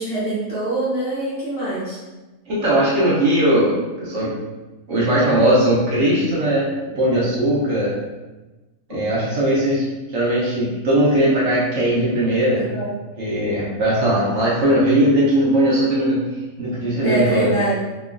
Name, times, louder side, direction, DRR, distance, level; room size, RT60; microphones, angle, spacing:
voice 1, 0.0-2.0 12.7-12.9 17.0-17.7, right 1 dB, 50° left, -9 dB, 0.9 m, -24 dB
voice 2, 2.5-4.3 4.9-6.7 6.9-7.9 8.9-9.8 10.1-12.7 13.2-16.2 16.6-17.5, right 1 dB, 60° right, -7 dB, 0.9 m, -19 dB
3.0 x 2.1 x 2.4 m, 1.1 s
omnidirectional pair, 1.5 m